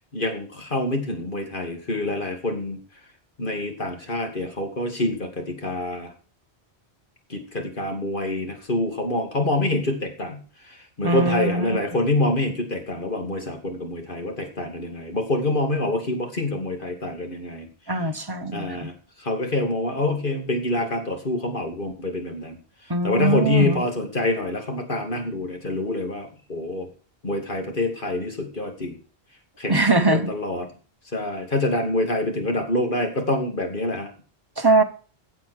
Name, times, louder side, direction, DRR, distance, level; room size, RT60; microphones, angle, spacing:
voice 1, 0.1-2.8 3.4-6.1 7.3-17.7 18.5-22.6 23.0-26.9 27.2-29.0 29.6-30.7 31.1-34.1, left 2 dB, 50° left, 4 dB, 2.8 m, -26 dB
voice 2, 11.0-11.8 17.9-18.9 22.9-23.8 29.7-30.3 34.6-34.8, right 2 dB, 20° right, 8 dB, 1.1 m, -21 dB
14.5 x 7.6 x 6.5 m, 0.39 s
omnidirectional pair, 1.1 m